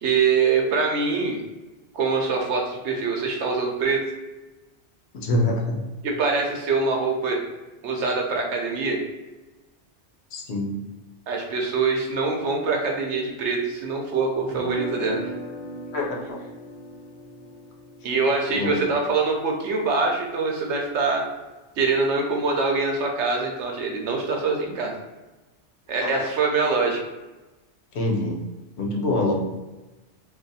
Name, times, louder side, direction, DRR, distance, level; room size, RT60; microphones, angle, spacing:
voice 1, 0.0-1.4 1.9-4.0 6.0-7.4 7.8-9.0 11.3-15.2 18.0-21.3 21.8-24.9 25.9-27.0, right 4 dB, 85° right, 1 dB, 1.0 m, -24 dB
voice 2, 5.1-5.8 10.3-10.8 15.9-16.5 18.5-18.8 26.0-26.3 27.9-28.4 28.8-29.3, left 2 dB, 70° left, 0 dB, 1.0 m, -25 dB
sound 1, 14.5-20.5, right 1 dB, 35° left, 0.4 m, -38 dB
2.6 x 2.4 x 4.0 m, 1.1 s
omnidirectional pair, 1.2 m